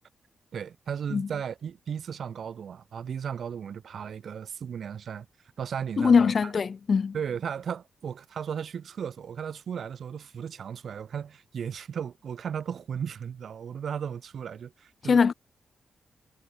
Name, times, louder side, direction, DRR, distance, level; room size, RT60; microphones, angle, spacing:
voice 1, 0.5-5.3 5.6-6.5 7.1-15.2, right 7 dB, 70° right, 3.0 m, -35 dB
voice 2, 6.0-7.1 15.0-15.3, left 5 dB, 50° left, 1.3 m, -22 dB
cardioid pair, 80°, 0 cm